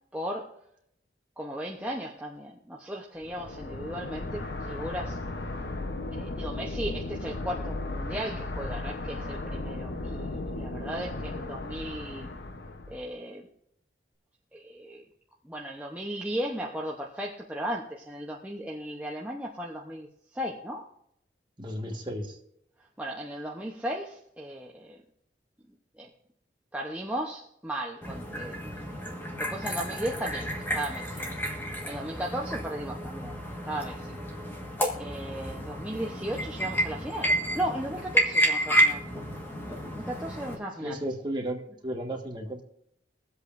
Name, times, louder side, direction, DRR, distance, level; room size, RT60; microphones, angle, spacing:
voice 1, 0.1-0.6 1.4-5.2 6.1-12.3 12.9-13.5 14.5-15.1 15.4-20.9 22.8-25.0 25.9-26.1 26.7-29.0 29.4-31.2 31.8-34.2 35.0-39.0 39.9-41.0, right 1 dB, 10° right, -2 dB, 0.8 m, -36 dB
sound 1, 3.2-13.1, left 2 dB, 65° left, 0.9 m, -36 dB
voice 2, 21.6-22.4 40.5-42.6, right 1 dB, 25° right, 1 dB, 1.5 m, -34 dB
sound 2, 28.0-40.6, equal, 10° left, 1.5 m, -30 dB
23.0 x 8.0 x 2.6 m, 0.73 s
head